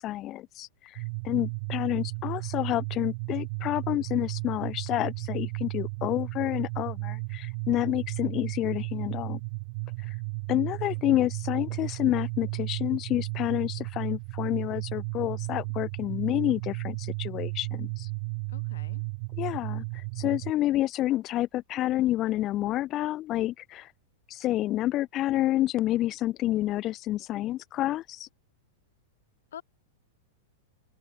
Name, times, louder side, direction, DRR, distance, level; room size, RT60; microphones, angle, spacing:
voice 1, 0.0-9.4 10.5-18.1 19.4-23.9 24.3-28.3, left 15 dB, 20° left, 0.4 m, -29 dB
sound 1, 1.0-20.5, right 29 dB, 35° right, 0.5 m, -34 dB
voice 2, 18.5-19.0 29.5-29.6, left 10 dB, 85° left, 1.6 m, -45 dB
open air
supercardioid pair, 175°, 0 cm